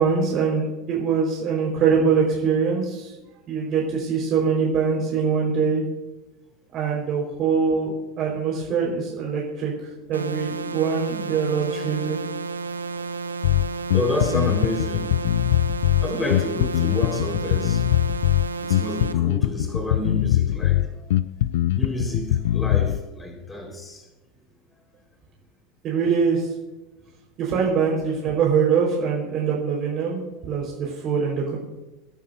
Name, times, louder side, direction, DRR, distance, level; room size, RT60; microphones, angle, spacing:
voice 1, 0.0-3.1 3.5-5.8 6.7-9.7 10.1-12.2 25.8-26.5 27.4-30.2 30.5-31.6, right 6 dB, 45° right, -3 dB, 4.7 m, -23 dB
sound 1, 10.1-19.1, right 4 dB, 90° right, 0.7 m, -32 dB
Bass guitar, 13.4-23.0, left 14 dB, 70° left, 0.4 m, -22 dB
voice 2, 13.9-15.1 16.0-17.8 18.6-21.1 21.7-24.0 27.5-27.7, left 1 dB, 15° left, 1 dB, 4.6 m, -29 dB
24.5 x 11.5 x 2.7 m, 1.1 s
hypercardioid pair, 85°, 0 cm